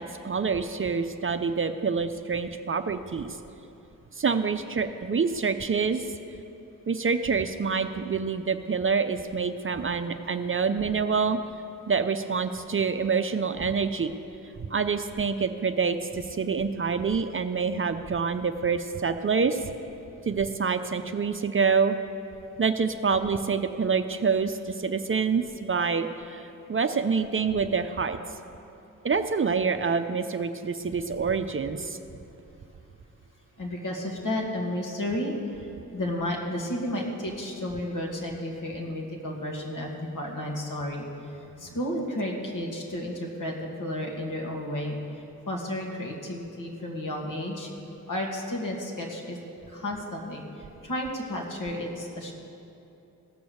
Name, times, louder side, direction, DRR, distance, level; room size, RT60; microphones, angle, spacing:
voice 1, 0.0-3.4 4.1-6.1 6.9-11.4 11.9-14.1 14.7-19.7 20.3-22.0 22.6-28.2 29.0-32.0, right 5 dB, 35° right, 8 dB, 0.6 m, -26 dB
voice 2, 33.6-47.7 48.1-49.4 49.7-52.3, left 1 dB, 55° left, -1 dB, 2.3 m, -32 dB
16.0 x 6.1 x 7.0 m, 2.8 s
supercardioid pair, 50°, 36 cm